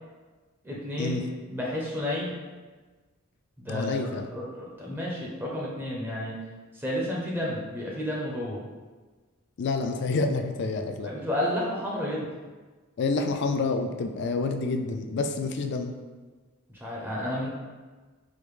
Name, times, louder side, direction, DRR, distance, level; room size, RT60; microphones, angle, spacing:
voice 1, 0.6-1.2 1.5-2.3 3.6-6.4 6.7-8.6 11.0-12.3 16.8-17.5, left 1 dB, 10° right, -4 dB, 0.5 m, -31 dB
voice 2, 3.7-4.3 9.6-11.1 13.0-15.9, left 3 dB, 55° left, 6 dB, 0.3 m, -28 dB
4.9 x 2.0 x 3.2 m, 1.3 s
head